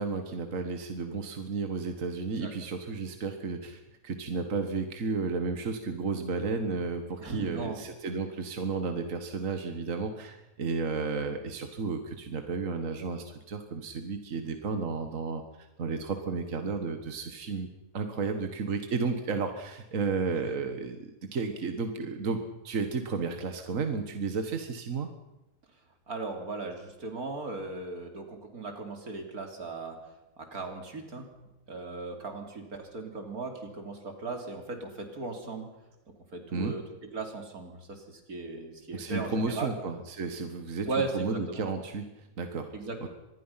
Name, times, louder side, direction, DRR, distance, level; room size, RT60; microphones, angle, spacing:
voice 1, 0.0-17.7 17.9-25.1 36.5-36.7 38.9-42.7, right 4 dB, 65° right, 7 dB, 1.9 m, -33 dB
voice 2, 7.2-7.8 26.1-30.0 30.4-31.3 31.7-35.7 36.3-36.8 37.1-39.7 40.9-41.6 42.7-43.1, right 3 dB, 90° right, 4 dB, 3.7 m, -37 dB
25.5 x 20.5 x 5.8 m, 0.95 s
omnidirectional pair, 1.5 m